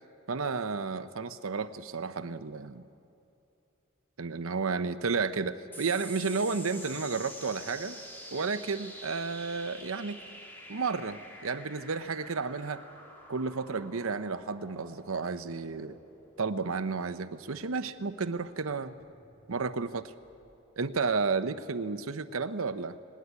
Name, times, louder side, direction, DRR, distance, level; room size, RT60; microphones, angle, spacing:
voice 1, 0.3-2.8 4.2-8.0 8.3-10.2 10.7-12.8 13.3-16.0 16.4-18.9 19.5-20.1 20.8-23.0, right 4 dB, 75° right, 12 dB, 0.8 m, -32 dB
sound 1, 5.7-20.5, equal, 10° left, 2.9 m, -48 dB
19.0 x 17.5 x 9.8 m, 2.7 s
head